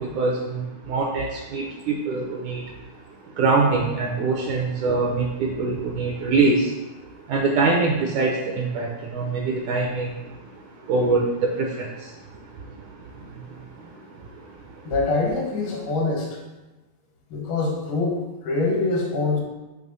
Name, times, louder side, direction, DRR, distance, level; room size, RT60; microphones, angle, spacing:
voice 1, 0.0-2.8 3.2-14.9, right 3 dB, 75° right, -2 dB, 1.8 m, -25 dB
voice 2, 14.9-16.4 17.3-19.4, left 3 dB, 80° left, -1 dB, 3.0 m, -24 dB
7.6 x 3.0 x 5.3 m, 1.1 s
omnidirectional pair, 4.2 m